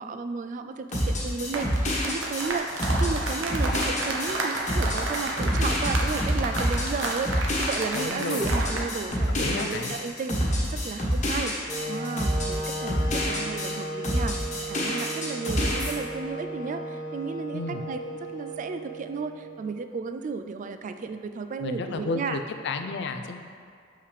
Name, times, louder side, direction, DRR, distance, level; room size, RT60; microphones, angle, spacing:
voice 1, 0.0-18.0 18.3-22.4, right 4 dB, 40° right, 8 dB, 0.3 m, -34 dB
sound 1, 0.9-13.7 14.0-15.9, equal, 40° left, 1.3 m, -27 dB
sound 2, 1.4-8.9 9.1-9.4, right 2 dB, 75° right, 0.8 m, -32 dB
voice 2, 7.9-8.5 9.3-10.0 17.5-17.8 21.6-23.4, left 3 dB, 60° left, 6 dB, 0.4 m, -32 dB
Wind instrument woodwind instrument, 11.7-19.6, right 2 dB, 15° right, 1.5 m, -36 dB
6.7 x 5.6 x 3.3 m, 2.3 s
head